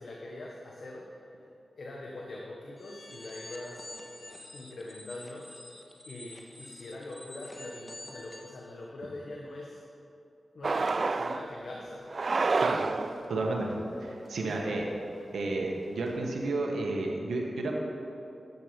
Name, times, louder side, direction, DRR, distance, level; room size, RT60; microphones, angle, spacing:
voice 1, 0.0-1.5 1.8-3.9 4.5-5.5 6.1-9.8 10.5-12.1 14.4-14.7 15.5-15.6, left 2 dB, 75° left, -2 dB, 1.1 m, -43 dB
sound 1, 2.8-8.6, left 1 dB, 30° left, 1.4 m, -48 dB
sound 2, 10.6-11.5 12.1-13.3, right 3 dB, 60° right, 0.3 m, -28 dB
voice 2, 13.3-13.7 14.0-14.9 15.3-17.7, right 2 dB, 85° right, 0 dB, 1.3 m, -31 dB
11.0 x 7.7 x 5.2 m, 2.9 s
cardioid pair, 50°, 0 cm